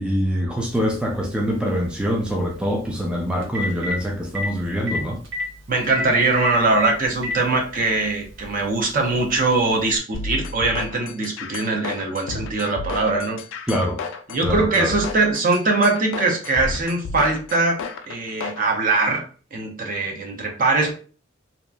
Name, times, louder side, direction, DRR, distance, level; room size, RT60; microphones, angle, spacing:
voice 1, 0.0-5.2 13.7-14.0 14.4-14.9, equal, 5° right, 0.4 m, -24 dB
Telephone, 0.7-0.8 3.0-3.1 3.4-3.9 4.3-4.5 4.9-5.0 5.2-5.4 5.9-6.0 6.4-6.5 6.8-7.4 8.4-8.5 9.9-10.0, left 2 dB, 85° right, 0.7 m, -27 dB
voice 2, 5.7-13.4 14.3-17.8 18.1-20.9, right 3 dB, 45° right, 0.6 m, -21 dB
sound 1, 10.1-18.6, left 3 dB, 80° left, 0.4 m, -32 dB
2.8 x 2.4 x 2.2 m
head